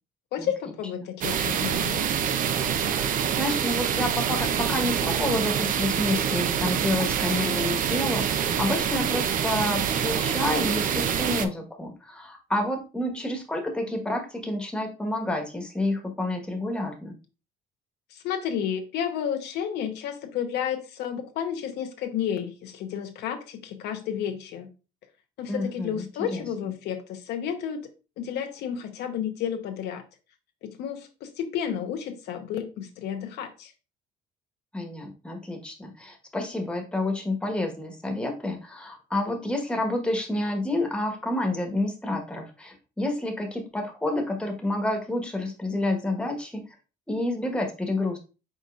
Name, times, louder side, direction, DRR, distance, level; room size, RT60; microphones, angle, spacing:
voice 1, 0.3-2.0 18.1-24.7 25.4-27.9 28.2-30.0 30.6-33.7, left 8 dB, 80° left, 0.8 m, -31 dB
sound 1, 1.2-11.5, right 8 dB, 55° right, 0.5 m, -26 dB
voice 2, 3.4-17.1 25.5-26.1 26.3-26.4 34.7-46.6 47.1-48.2, left 1 dB, 5° left, 1.2 m, -29 dB
5.2 x 4.0 x 2.4 m
cardioid pair, 110°, 17 cm